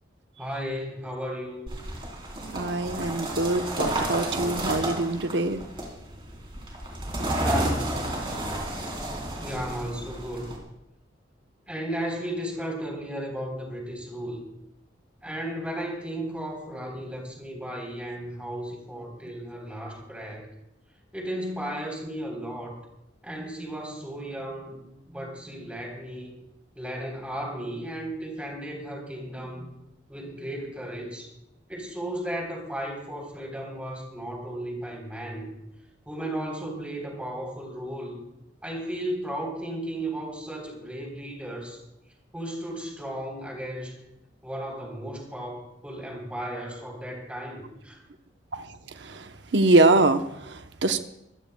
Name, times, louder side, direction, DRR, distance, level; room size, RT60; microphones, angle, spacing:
voice 1, 0.4-1.7 7.3-7.9 9.4-10.5 11.7-14.4 15.2-20.5 21.1-22.8 23.2-24.8 25.1-26.3 26.8-29.7 30.1-31.3 31.7-35.5 36.1-38.2 38.6-41.8 42.3-43.9 44.4-48.0, right 1 dB, 5° right, 0 dB, 3.7 m, -35 dB
sound 1, 1.7-10.6, right 1 dB, 25° right, 3.7 m, -31 dB
voice 2, 2.5-5.6 48.5-51.0, right 2 dB, 60° right, 7 dB, 0.9 m, -24 dB
24.0 x 15.5 x 2.3 m, 0.84 s
head